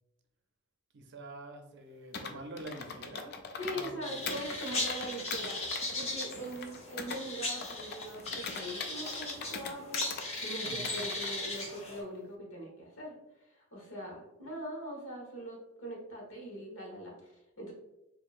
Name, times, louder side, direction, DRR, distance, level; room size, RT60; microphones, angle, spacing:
voice 1, 0.9-4.3 10.6-10.9, right 2 dB, 60° right, 5 dB, 0.6 m, -46 dB
Computer keyboard, 2.1-3.9 4.3-7.2 7.6-10.3 10.7-11.3, left 5 dB, 50° left, 0.4 m, -41 dB
voice 2, 3.6-17.7, right 1 dB, 70° left, -2 dB, 1.4 m, -42 dB
sound 1, 4.0-12.0, left 2 dB, 30° left, 0.9 m, -38 dB
4.5 x 2.9 x 2.5 m, 0.92 s
head